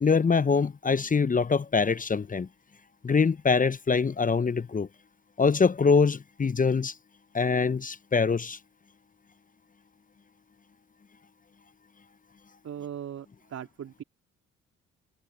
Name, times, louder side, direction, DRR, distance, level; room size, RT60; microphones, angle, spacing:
voice 1, 0.0-2.5 3.0-4.9 5.4-6.9 7.3-8.6, left 5 dB, 25° left, 1.0 m, -24 dB
voice 2, 12.6-14.0, right 9 dB, 55° right, 3.8 m, -39 dB
hypercardioid pair, 50°, 30 cm